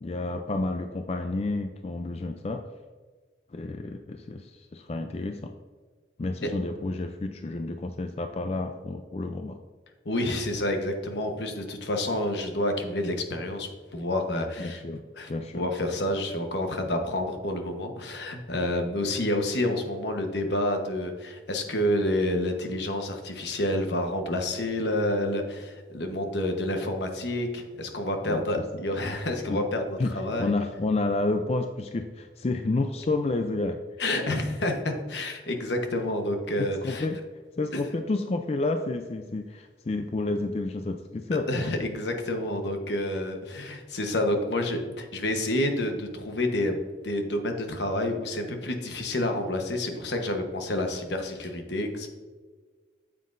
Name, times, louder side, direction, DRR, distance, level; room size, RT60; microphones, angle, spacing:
voice 1, 0.0-2.6 3.5-5.5 6.2-9.6 14.6-15.7 28.3-28.4 29.0-29.1 29.5-29.6 30.0-30.1 30.4-33.8 36.6-37.2 37.6-41.5, left 2 dB, 35° left, 6 dB, 0.3 m, -30 dB
voice 2, 10.0-14.8 15.2-30.5 34.0-37.1 37.7-37.8 41.5-46.8 47.0-52.1, left 1 dB, 70° left, 4 dB, 1.1 m, -29 dB
9.3 x 7.4 x 2.5 m, 1.4 s
head